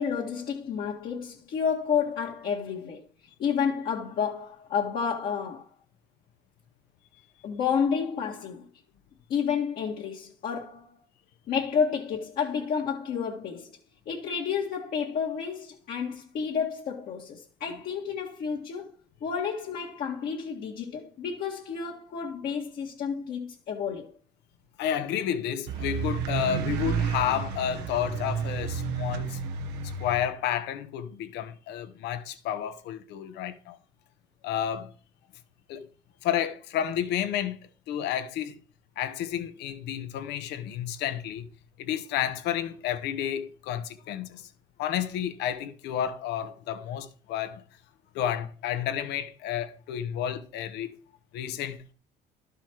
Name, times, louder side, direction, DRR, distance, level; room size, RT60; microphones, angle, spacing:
voice 1, 0.0-3.1 3.4-5.7 7.4-8.6 9.3-11.0 11.5-13.8 14.1-18.9 19.2-24.1, left 6 dB, 65° left, 1.8 m, -30 dB
voice 2, 24.8-29.4 30.0-33.8 34.4-34.9 35.7-35.9 36.2-38.6 39.0-41.4 41.8-44.5 44.8-47.6 48.1-51.0 51.3-51.8, left 10 dB, 85° left, 1.1 m, -31 dB
sound 1, 25.7-30.3, right 6 dB, 85° right, 1.0 m, -31 dB
12.0 x 5.6 x 4.5 m
cardioid pair, 110°, 17 cm